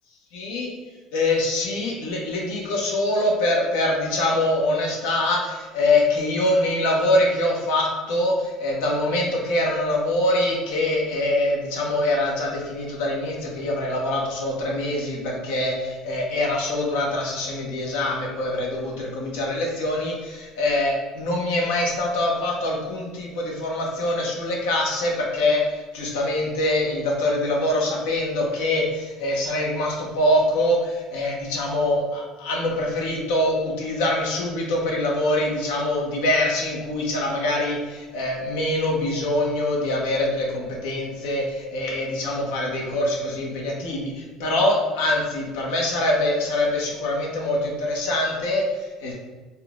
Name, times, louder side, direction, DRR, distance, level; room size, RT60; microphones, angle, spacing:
voice 1, 0.3-0.7 1.1-49.1, left 1 dB, 85° left, -2 dB, 1.0 m, -24 dB
4.2 x 2.3 x 3.7 m, 1.2 s
supercardioid pair, 95°, 0 cm